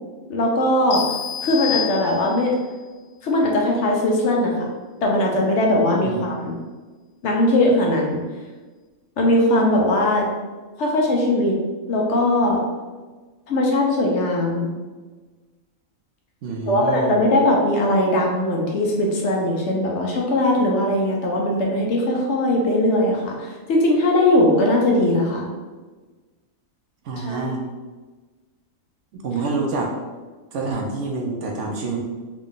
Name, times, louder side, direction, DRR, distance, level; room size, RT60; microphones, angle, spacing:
voice 1, 0.3-1.0 1.4-2.5 3.2-4.7 5.0-6.6 7.2-8.2 9.2-10.3 10.8-11.6 11.9-12.6 13.5-14.7 16.7-25.5 27.2-27.4, left 1 dB, 65° left, -1 dB, 0.9 m, -20 dB
sound 1, 0.9-2.6, left 10 dB, 90° left, 1.3 m, -29 dB
voice 2, 16.4-17.2 27.0-27.6 29.1-29.9 30.5-32.0, right 3 dB, 70° right, 0 dB, 0.9 m, -27 dB
3.5 x 2.3 x 3.7 m, 1.3 s
omnidirectional pair, 1.4 m